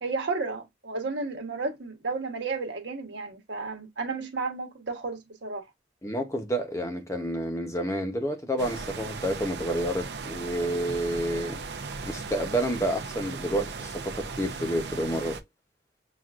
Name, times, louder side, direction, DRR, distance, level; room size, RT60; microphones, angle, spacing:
voice 1, 0.0-5.6, right 3 dB, 85° right, 1.2 m, -32 dB
voice 2, 6.0-11.6 12.0-15.4, right 1 dB, 15° left, 0.8 m, -29 dB
sound 1, 8.6-15.4, right 4 dB, 65° right, 0.6 m, -37 dB
5.9 x 2.5 x 2.4 m
head